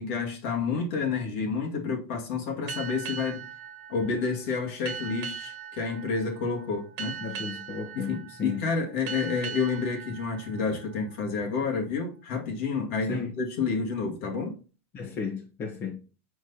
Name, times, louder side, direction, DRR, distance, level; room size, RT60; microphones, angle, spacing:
voice 1, 0.0-3.4 3.9-7.2 7.9-14.6, left 5 dB, 65° left, 2.1 m, -29 dB
sound 1, 2.7-11.8, right 8 dB, 50° right, 1.3 m, -41 dB
voice 2, 7.2-8.6 13.1-13.3 14.9-16.0, left 5 dB, 35° left, 1.5 m, -34 dB
6.2 x 4.8 x 4.1 m
supercardioid pair, 150°, 7 cm